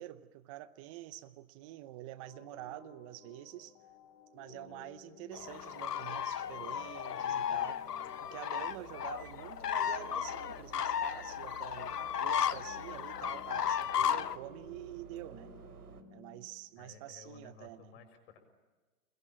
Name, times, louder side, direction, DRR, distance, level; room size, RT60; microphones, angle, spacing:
voice 1, 0.0-3.8 4.3-7.8 8.2-15.5 16.1-18.0, right 15 dB, 20° right, 15 dB, 0.8 m, -47 dB
sound 1, 2.3-16.5, left 6 dB, 25° left, 2.9 m, -58 dB
sound 2, 5.3-14.4, left 9 dB, 85° left, 1.2 m, -35 dB
sound 3, 8.7-16.0, right 8 dB, 75° right, 3.0 m, -54 dB
voice 2, 16.8-18.4, left 7 dB, 40° left, 7 dB, 6.3 m, -55 dB
27.5 x 22.0 x 8.8 m, 1.3 s
hypercardioid pair, 150°, 46 cm